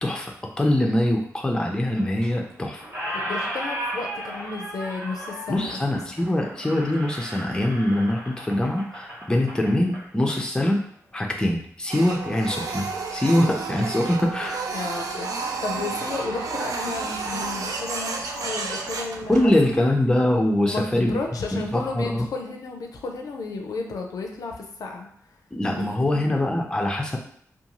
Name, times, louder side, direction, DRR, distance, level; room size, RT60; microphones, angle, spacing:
voice 1, 0.0-2.8 5.5-10.8 11.1-14.6 19.3-21.2 21.5-22.3 25.5-27.2, left 1 dB, 15° left, 1 dB, 0.4 m, -23 dB
Squeak, 1.9-2.5 2.8-10.4, equal, 45° right, 1.0 m, -35 dB
voice 2, 3.1-5.8 14.7-19.9 20.6-25.1 26.3-26.4, left 3 dB, 85° left, 2 dB, 0.4 m, -33 dB
Printer, 11.9-19.8, right 4 dB, 85° right, 0.4 m, -31 dB
2.5 x 2.3 x 2.9 m, 0.63 s
wide cardioid pair, 85°, 6 cm